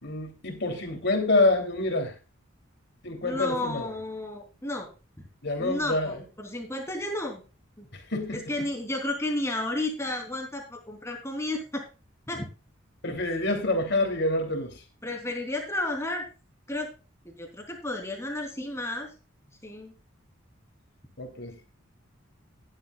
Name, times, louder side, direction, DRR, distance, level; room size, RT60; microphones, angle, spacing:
voice 1, 0.0-2.1 3.0-3.9 5.4-6.2 7.9-8.4 13.0-14.7 21.2-21.5, left 2 dB, 60° left, 3.2 m, -27 dB
voice 2, 3.2-4.9 5.6-7.4 7.8-7.9 8.3-11.8 12.3-12.4 13.1-13.2 15.0-16.3 16.7-16.9 17.2-19.1 19.6-19.9, left 1 dB, 15° left, 3.4 m, -32 dB
14.5 x 11.5 x 2.4 m
head